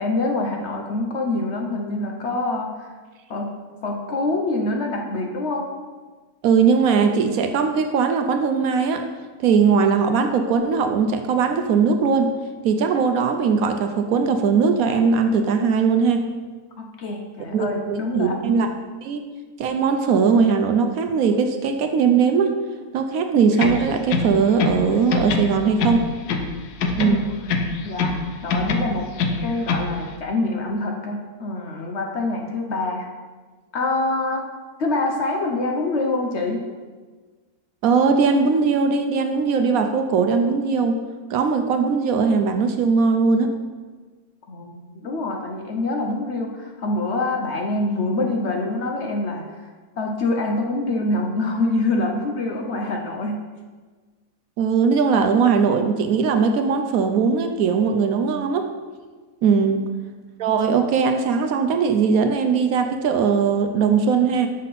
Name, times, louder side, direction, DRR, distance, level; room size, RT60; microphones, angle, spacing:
voice 1, 0.0-2.9 3.3-3.6 3.8-5.6 16.8-18.4 27.0-27.3 27.8-28.1 28.4-29.1 29.4-33.1 33.7-34.4 34.8-36.6 44.5-49.7 50.0-53.4 59.6-59.8, left 2 dB, 55° left, 1 dB, 0.9 m, -25 dB
voice 2, 6.4-9.0 9.4-12.3 12.6-16.2 17.5-18.7 19.0-19.2 19.6-22.5 22.9-26.1 27.0-27.3 37.8-41.0 41.3-43.5 54.6-58.7 59.4-59.9 60.4-64.5, right 5 dB, 70° right, 6 dB, 1.0 m, -19 dB
sound 1, 23.5-24.8 25.1-26.5 26.8-28.2 28.5-29.9, left 4 dB, 85° left, 1.2 m, -24 dB
6.4 x 5.7 x 4.0 m, 1.4 s
omnidirectional pair, 1.6 m